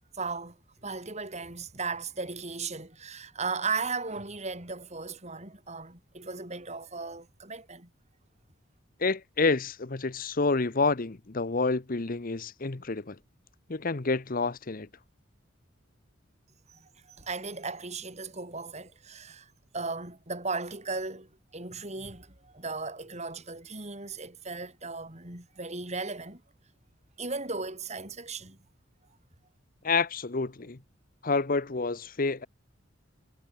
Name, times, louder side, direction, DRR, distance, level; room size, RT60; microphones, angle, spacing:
voice 1, 0.2-0.6 0.8-7.9 16.7-26.4 27.2-28.6, right 4 dB, 35° right, 5.7 m, -36 dB
voice 2, 9.0-13.2 13.7-14.9 29.8-30.8 31.2-32.5, left 3 dB, 45° left, 0.9 m, -28 dB
head